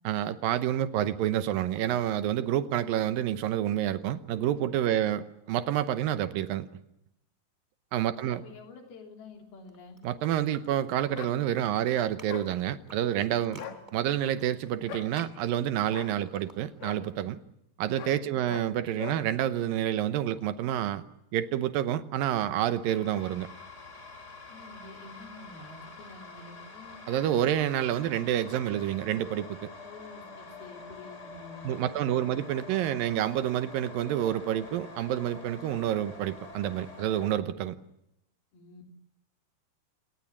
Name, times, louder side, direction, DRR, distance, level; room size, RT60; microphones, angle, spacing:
voice 1, 0.0-6.7 7.9-8.4 10.0-13.6 13.9-17.4 17.8-21.0 21.3-23.5 27.1-29.7 31.6-37.8, right 11 dB, 70° right, 12 dB, 2.3 m, -28 dB
voice 2, 8.1-10.0 13.5-13.8 18.2-18.5 24.5-27.0 29.8-32.4 38.5-38.8, left 3 dB, 65° left, 3 dB, 5.2 m, -49 dB
sound 1, 9.6-11.2 11.5-17.1, right 2 dB, 15° right, 1.9 m, -53 dB
sound 2, 11.1-11.4 12.3-12.5 13.5-13.8 14.9-15.1 15.9-16.1 16.8-17.0 18.0-18.2 18.5-18.7 19.0-19.2, left 9 dB, 90° left, 4.3 m, -40 dB
sound 3, 22.6-37.3, left 3 dB, 20° left, 3.0 m, -47 dB
28.0 x 18.5 x 7.3 m, 0.84 s
omnidirectional pair, 4.9 m